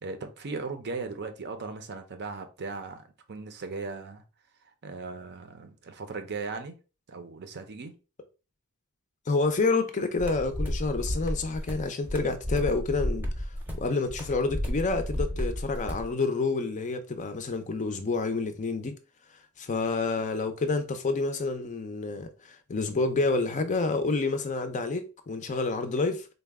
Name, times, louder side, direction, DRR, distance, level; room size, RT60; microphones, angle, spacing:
voice 1, 0.0-4.2 4.6-6.7 7.1-8.0, right 4 dB, 50° right, 0.6 m, -38 dB
voice 2, 9.3-13.5 13.8-19.0 19.6-26.3, left 3 dB, 35° left, 0.5 m, -28 dB
sound 1, 10.2-16.1, equal, 10° right, 0.7 m, -32 dB
3.9 x 2.2 x 3.4 m
head